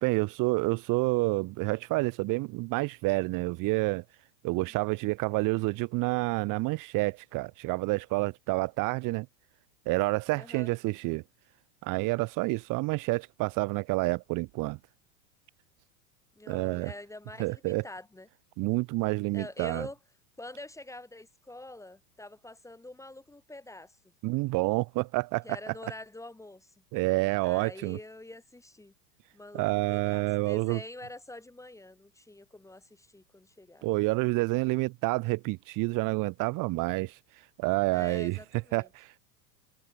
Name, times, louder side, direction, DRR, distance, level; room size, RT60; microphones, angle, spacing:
voice 1, 0.0-4.0 4.4-9.3 9.9-11.2 11.8-14.8 16.5-16.9 17.4-17.8 18.6-19.9 24.2-25.4 26.9-28.0 29.5-30.8 33.8-37.1 37.6-38.4 38.7-39.2, right 24 dB, 40° right, 1.1 m, -28 dB
voice 2, 4.5-4.9 10.3-10.7 16.4-18.3 19.3-20.0 20.4-24.0 25.4-26.8 27.4-28.9 29.3-34.0 37.9-38.9, left 2 dB, 5° left, 5.6 m, -46 dB
hypercardioid pair, 120°, 48 cm